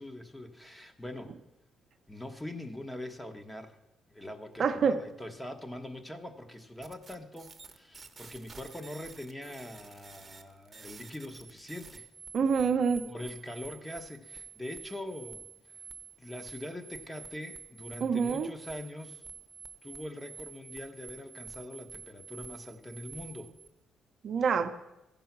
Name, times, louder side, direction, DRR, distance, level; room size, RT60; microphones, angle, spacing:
voice 1, 0.0-1.3 2.1-3.8 4.1-12.1 13.1-15.4 16.2-19.2 19.8-23.5, left 1 dB, 10° left, 6 dB, 1.0 m, -43 dB
voice 2, 4.6-5.0 12.3-13.0 18.0-18.5 24.2-24.7, right 6 dB, 55° right, 7 dB, 0.6 m, -26 dB
sound 1, 6.8-23.7, right 6 dB, 30° right, 0.9 m, -49 dB
14.5 x 5.5 x 5.9 m, 0.92 s
cardioid pair, 90°, 0 cm